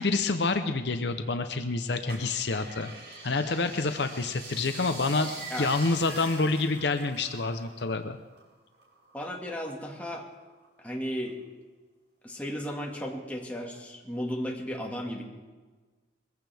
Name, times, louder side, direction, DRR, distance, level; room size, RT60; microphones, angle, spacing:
voice 1, 0.0-2.9 3.2-5.3 5.6-8.2, left 3 dB, 65° left, 8 dB, 0.8 m, -28 dB
sound 1, 2.1-7.9 8.2-9.5 10.0-10.8 11.3-11.4, right 2 dB, 70° right, 5.6 m, -44 dB
voice 2, 9.1-10.3 10.8-11.4 12.2-15.2, equal, 10° left, -1 dB, 1.9 m, -35 dB
21.5 x 15.5 x 3.5 m, 1.3 s
head